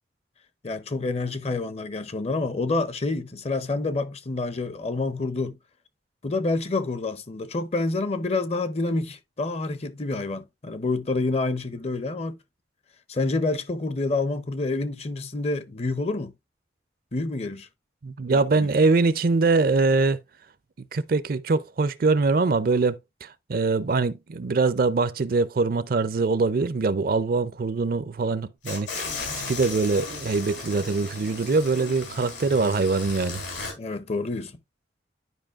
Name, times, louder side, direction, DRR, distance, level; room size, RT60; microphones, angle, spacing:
voice 1, 0.6-5.6 6.2-12.4 13.1-16.3 17.1-17.7 18.3-18.7 33.8-34.6, left 3 dB, 35° left, 0.6 m, -28 dB
voice 2, 18.0-20.2 20.9-29.1 29.5-33.4, right 3 dB, 50° right, 0.5 m, -23 dB
sound 1, 28.6-33.7, left 4 dB, 85° left, 3.7 m, -35 dB
11.0 x 5.1 x 2.4 m
head